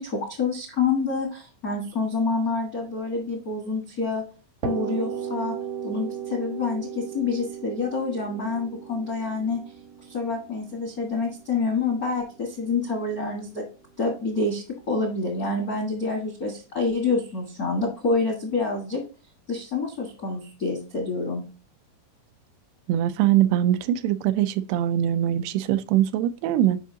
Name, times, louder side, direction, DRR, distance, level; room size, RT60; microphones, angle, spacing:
voice 1, 0.0-4.2 4.6-5.5 5.8-9.6 10.1-13.6 14.0-19.0 19.5-21.4, left 3 dB, 75° left, 0.8 m, -27 dB
sound 1, 4.6-12.3, right 8 dB, 70° right, 1.7 m, -35 dB
voice 2, 22.9-26.8, right 12 dB, 90° right, 2.6 m, -22 dB
8.4 x 5.5 x 2.8 m
omnidirectional pair, 4.5 m